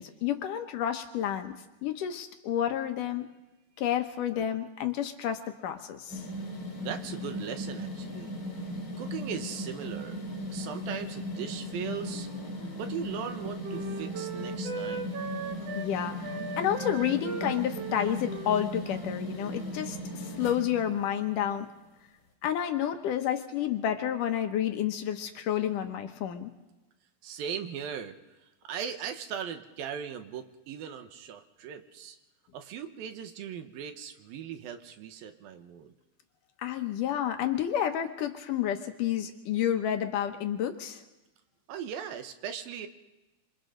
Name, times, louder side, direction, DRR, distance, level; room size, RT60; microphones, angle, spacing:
voice 1, 0.0-1.5 1.8-3.3 3.8-6.2 15.8-21.7 22.4-26.5 36.6-41.0, left 10 dB, 70° left, 6 dB, 2.4 m, -30 dB
sound 1, 6.1-21.5, left 1 dB, 35° left, 3.1 m, -37 dB
voice 2, 6.8-8.3 9.0-10.2 10.5-12.3 12.8-15.1 27.2-28.2 28.6-32.2 32.5-35.9 41.7-42.9, right 8 dB, 80° right, 8 dB, 2.9 m, -38 dB
Wind instrument woodwind instrument, 12.0-15.9 16.2-19.8 20.0-20.6, right 4 dB, 55° right, 1.9 m, -40 dB
27.0 x 25.0 x 3.9 m, 1.1 s
omnidirectional pair, 4.2 m